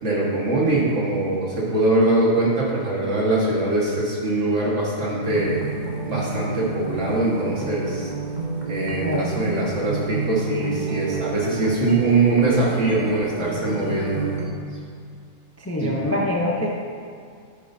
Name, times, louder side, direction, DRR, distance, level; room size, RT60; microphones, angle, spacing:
voice 1, 0.0-5.6 6.1-8.1 8.7-14.3 15.8-15.9, right 2 dB, 60° right, -5 dB, 2.0 m, -22 dB
sound 1, 5.3-14.5, right 4 dB, 35° right, 1.1 m, -30 dB
voice 2, 9.0-9.3 15.6-16.7, left 1 dB, 15° left, -2 dB, 0.5 m, -24 dB
9.7 x 9.0 x 2.7 m, 2.2 s
omnidirectional pair, 1.4 m